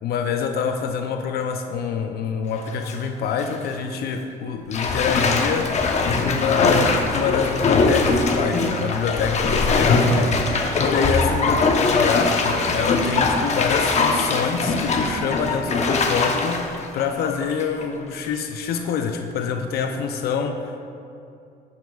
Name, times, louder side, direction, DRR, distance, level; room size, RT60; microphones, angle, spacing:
voice 1, 0.0-5.7 6.2-20.9, left 6 dB, 70° left, 5 dB, 0.7 m, -26 dB
Bathtub (filling or washing), 2.5-3.0 3.4-3.5 4.7-17.8 18.2-18.3, left 3 dB, 40° left, 1.0 m, -21 dB
sound 1, 8.6-16.1, right 4 dB, 40° right, 2.1 m, -41 dB
13.5 x 9.4 x 2.4 m, 2.5 s
cardioid pair, 110°, 17 cm